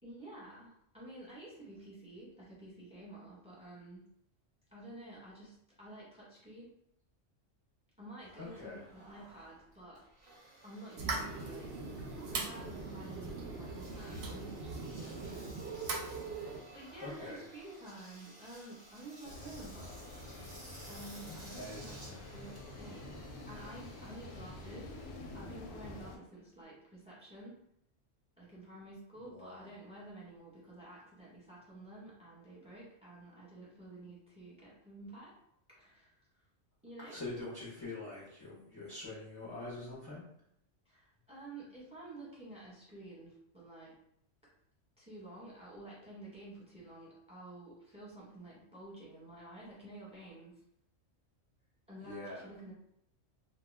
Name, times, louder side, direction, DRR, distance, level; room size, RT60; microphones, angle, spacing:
voice 1, 0.0-4.0 4.7-6.7 8.0-10.0 10.6-11.7 12.2-15.6 16.7-20.0 20.9-23.2 23.5-24.9 25.3-27.6 28.4-35.4 35.7-36.1 36.8-37.1 40.8-43.9 45.0-50.6 51.9-52.7, right 2 dB, 5° right, -7 dB, 0.9 m, -51 dB
Engine, 8.2-26.6, right 1 dB, 35° right, 0.5 m, -56 dB
voice 2, 8.4-8.8 17.0-17.4 21.5-22.1 29.3-29.7 37.1-40.2 52.0-52.4, left 2 dB, 30° left, -8 dB, 0.4 m, -44 dB
sound 1, 11.0-16.6, right 3 dB, 65° right, 0.7 m, -40 dB
sound 2, 19.2-26.2, left 2 dB, 65° left, 0.7 m, -48 dB
2.2 x 2.1 x 3.3 m, 0.74 s
omnidirectional pair, 1.3 m